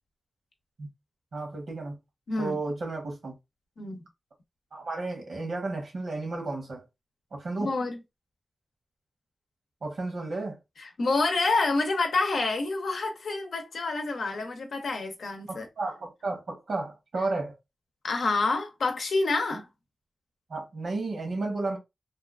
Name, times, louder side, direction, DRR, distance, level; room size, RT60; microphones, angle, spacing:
voice 1, 1.3-2.0 2.4-3.3 4.7-6.8 7.3-7.7 9.8-10.6 15.5-17.6 20.5-21.8, right 3 dB, 80° right, 1.1 m, -33 dB
voice 2, 2.3-2.6 3.8-4.0 7.6-8.0 10.8-15.7 18.0-19.7, left 3 dB, 80° left, 0.6 m, -28 dB
2.7 x 2.3 x 2.3 m
cardioid pair, 50°, 0 cm